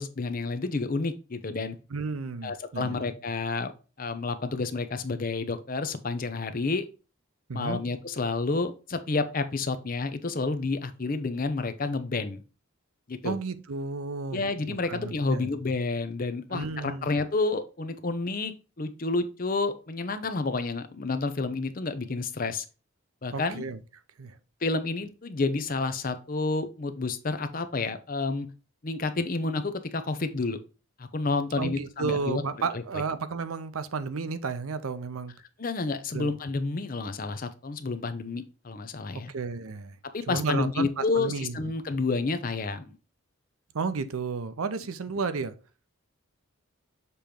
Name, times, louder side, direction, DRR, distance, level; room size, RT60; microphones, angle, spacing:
voice 1, 0.0-1.8 2.4-3.7 4.0-6.8 7.5-12.4 13.1-13.3 14.3-22.6 23.2-23.6 24.6-28.5 28.8-30.6 31.0-32.4 32.7-32.8 35.6-39.3 40.1-42.9, left 3 dB, 40° left, 0.6 m, -30 dB
voice 2, 1.9-3.0 7.5-7.8 13.2-14.4 14.7-15.5 16.5-17.1 23.3-23.8 24.2-24.4 31.6-35.3 36.1-36.3 39.3-40.0 40.3-41.6 43.7-45.6, right 4 dB, 85° right, 0.6 m, -32 dB
6.8 x 3.0 x 5.1 m
head